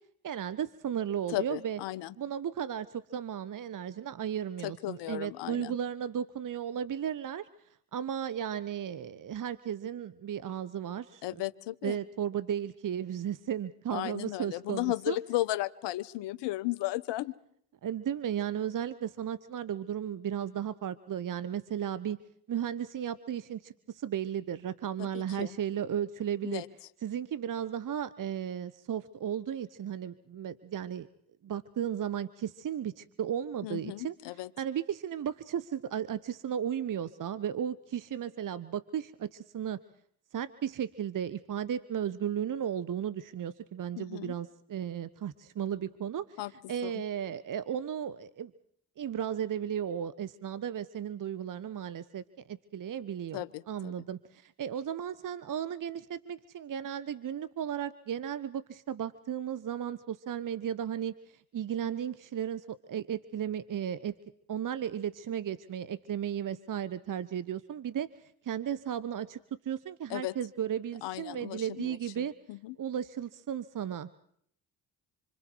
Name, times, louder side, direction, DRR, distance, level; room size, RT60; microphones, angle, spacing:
voice 1, 0.2-1.8 2.2-7.5 7.9-11.2 11.8-15.2 17.8-22.2 22.5-26.6 27.0-31.1 31.4-34.1 34.6-39.8 40.3-46.4 46.7-48.5 49.0-64.1 64.5-69.4 69.6-72.3 72.8-74.2, right 9 dB, 45° right, 15 dB, 1.2 m, -35 dB
voice 2, 1.3-2.1 4.6-5.8 11.2-12.0 13.9-17.3 25.0-25.6 26.4-26.7 33.6-34.5 44.0-44.3 46.4-46.5 46.8-46.9 53.3-53.9 70.1-70.3 71.0-72.7, left 17 dB, 75° left, 16 dB, 1.2 m, -35 dB
27.0 x 25.5 x 4.7 m, 0.68 s
hypercardioid pair, 55°, 43 cm